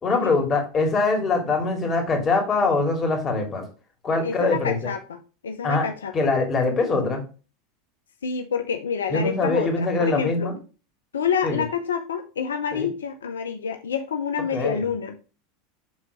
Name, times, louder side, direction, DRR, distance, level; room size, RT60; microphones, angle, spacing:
voice 1, 0.0-3.6 4.0-4.9 5.6-5.8 6.1-7.2 9.1-10.5 11.4-11.6 12.7-12.9 14.5-14.8, left 3 dB, 30° left, 3 dB, 2.7 m, -23 dB
voice 2, 4.2-6.1 8.2-10.5 11.1-15.2, left 6 dB, 85° left, 6 dB, 0.7 m, -28 dB
6.5 x 4.0 x 4.9 m, 0.34 s
hypercardioid pair, 95°, 0 cm